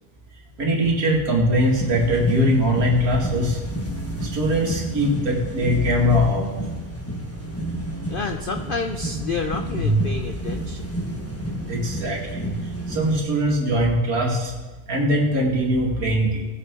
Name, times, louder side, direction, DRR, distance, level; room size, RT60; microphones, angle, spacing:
voice 1, 0.6-3.6 4.3-6.5 9.8-10.0 11.7-12.5 12.9-14.5 14.9-16.4, equal, 65° right, -2 dB, 2.6 m, -21 dB
sound 1, 1.5-13.2, right 1 dB, 10° left, 1.2 m, -31 dB
voice 2, 8.1-10.9, left 4 dB, 55° left, 5 dB, 0.6 m, -29 dB
18.0 x 8.5 x 3.7 m, 1.2 s
omnidirectional pair, 1.7 m